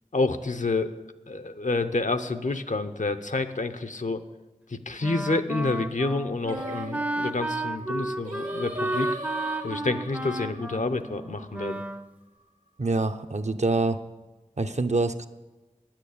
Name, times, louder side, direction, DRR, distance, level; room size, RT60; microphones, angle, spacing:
voice 1, 0.1-0.9 1.3-4.2 4.7-9.1 9.6-11.8, left 3 dB, 75° left, 9 dB, 0.8 m, -28 dB
Wind instrument woodwind instrument, 5.0-12.1, right 2 dB, 10° right, 0.5 m, -32 dB
Singing, 6.5-11.8, equal, 80° right, 1.7 m, -41 dB
voice 2, 12.8-14.0 14.6-15.3, right 3 dB, 65° right, 9 dB, 0.7 m, -25 dB
9.5 x 9.0 x 8.4 m, 1.2 s
wide cardioid pair, 45°, 13 cm